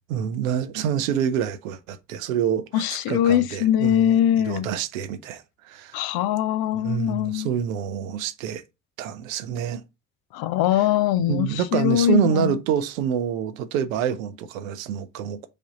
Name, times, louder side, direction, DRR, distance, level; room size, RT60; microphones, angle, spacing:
voice 1, 0.1-4.1 4.5-5.4 5.7-6.0 6.7-8.6 9.0-9.8 11.3-15.5, right 9 dB, 90° right, 0.5 m, -27 dB
voice 2, 2.7-4.7 5.9-7.5 10.3-12.6, left 11 dB, 65° left, 0.5 m, -22 dB
5.0 x 2.6 x 4.0 m
hypercardioid pair, 45°, 39 cm